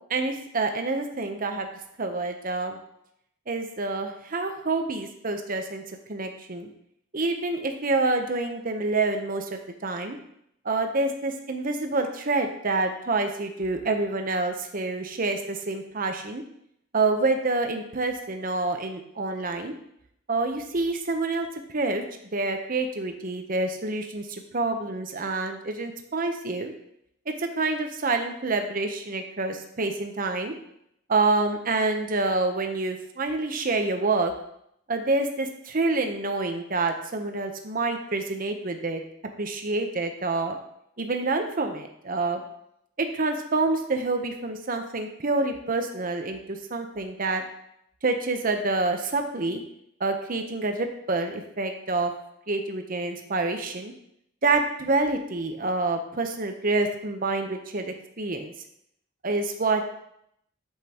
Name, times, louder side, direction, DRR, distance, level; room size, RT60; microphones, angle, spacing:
voice 1, 0.1-1.7 2.0-2.8 3.5-6.7 7.1-10.2 10.6-16.4 16.9-19.7 20.3-22.0 22.3-26.7 27.4-30.5 31.1-34.3 34.9-39.0 39.4-40.6 41.0-42.4 43.0-47.4 48.0-49.6 50.0-52.1 52.5-53.9 54.4-58.5 59.2-59.9, right 3 dB, 45° right, 5 dB, 0.9 m, -27 dB
8.2 x 7.5 x 3.0 m, 0.74 s
head